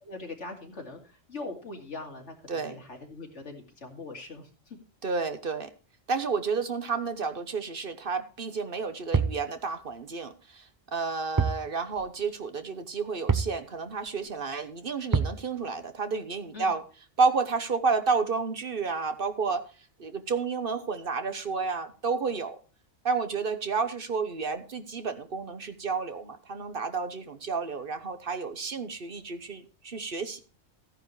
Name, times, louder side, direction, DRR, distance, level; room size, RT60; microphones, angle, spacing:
voice 1, 0.0-1.0 1.3-4.5 16.5-16.7, left 3 dB, 75° left, 2 dB, 2.8 m, -41 dB
voice 2, 2.5-2.8 5.0-5.7 6.1-16.8 17.2-19.6 20.0-22.6 23.0-30.4, right 4 dB, 50° right, 9 dB, 1.1 m, -31 dB
sound 1, 9.1-9.5 11.4-11.7 12.0-12.1 13.3-13.6 15.1-15.4, right 5 dB, 35° right, 0.3 m, -25 dB
14.5 x 9.8 x 3.2 m, 0.35 s
omnidirectional pair, 1.2 m